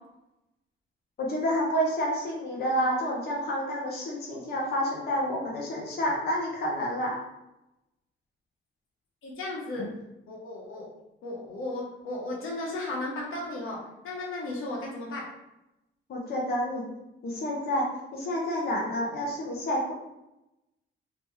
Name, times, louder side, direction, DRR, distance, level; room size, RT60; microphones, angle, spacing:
voice 1, 1.2-7.2 16.1-16.9 17.2-19.9, equal, 50° left, -3 dB, 0.8 m, -29 dB
voice 2, 9.2-9.9 10.3-10.9 11.2-15.3, left 2 dB, 85° left, -3 dB, 1.1 m, -35 dB
3.3 x 2.9 x 3.2 m, 0.92 s
cardioid pair, 155°, 21 cm